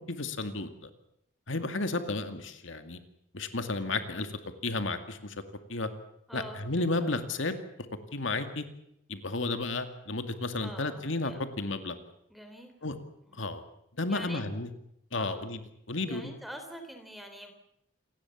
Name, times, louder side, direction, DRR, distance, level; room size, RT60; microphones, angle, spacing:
voice 1, 0.1-0.9 1.5-3.0 3.3-4.3 4.6-5.4 5.7-5.9 6.3-7.6 8.1-8.6 9.1-12.0 12.8-13.0 13.3-13.6 14.0-14.7 15.1-15.6 15.9-16.3, left 2 dB, 75° left, 8 dB, 2.1 m, -32 dB
voice 2, 6.3-7.1 10.6-11.4 12.3-12.7 13.3-13.5 14.1-14.5 15.1-15.4 16.1-17.5, equal, ahead, 5 dB, 3.7 m, -45 dB
28.0 x 19.0 x 7.2 m, 0.78 s
head